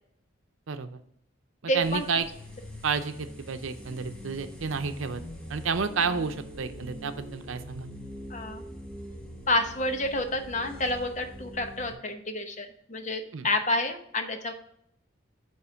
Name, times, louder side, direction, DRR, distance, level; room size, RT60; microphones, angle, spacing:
voice 1, 0.7-1.0 1.7-2.3 2.8-5.2 5.5-7.9 13.3-13.5, right 5 dB, 90° right, 9 dB, 0.7 m, -30 dB
voice 2, 1.7-2.0 8.3-8.6 9.5-14.5, left 1 dB, 40° left, 6 dB, 0.9 m, -29 dB
sound 1, 1.8-11.9, equal, 5° left, 1.1 m, -43 dB
9.4 x 3.2 x 5.8 m, 0.72 s
head